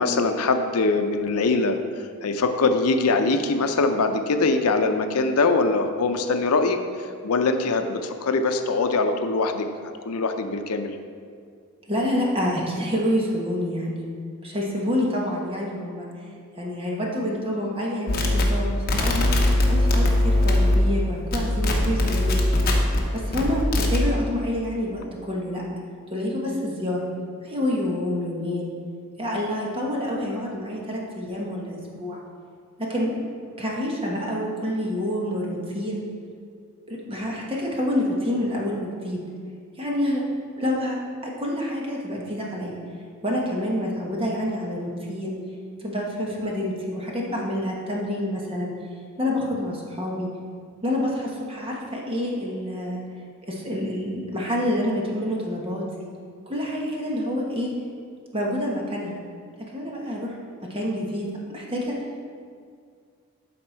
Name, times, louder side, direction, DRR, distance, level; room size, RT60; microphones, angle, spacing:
voice 1, 0.0-1.8 2.2-6.8 7.2-9.7 10.0-11.0, left 3 dB, 80° left, 7 dB, 0.6 m, -22 dB
voice 2, 11.9-14.1 14.4-16.1 16.6-19.3 19.7-22.4 23.1-25.6 26.1-27.1 27.4-28.7 29.2-32.2 32.8-33.1 33.6-36.0 36.9-39.2 39.8-40.2 40.6-41.0 41.2-42.8 43.2-45.4 45.8-48.7 49.2-50.3 50.8-53.0 53.5-56.1 56.5-57.7 58.3-59.2 59.7-61.9, left 1 dB, 25° right, -2 dB, 1.2 m, -27 dB
sound 1, 18.1-21.0 21.3-23.0 23.3-24.0, left 1 dB, 45° left, 1.0 m, -21 dB
12.0 x 4.3 x 4.4 m, 2.2 s
head